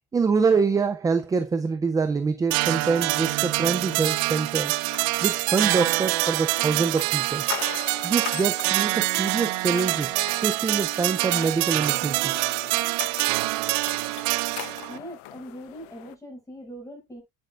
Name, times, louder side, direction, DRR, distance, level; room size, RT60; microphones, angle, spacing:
voice 1, 0.1-4.7 5.2-7.4 8.0-10.1 10.4-12.5, right 5 dB, 10° right, 0.4 m, -25 dB
sound 1, 2.5-15.0, right 21 dB, 70° right, 0.6 m, -25 dB
sound 2, 3.9-16.1, left 16 dB, 80° left, 0.9 m, -42 dB
voice 2, 14.9-17.2, equal, 10° left, 6.2 m, -41 dB
9.0 x 8.9 x 2.4 m
cardioid pair, 150°, 41 cm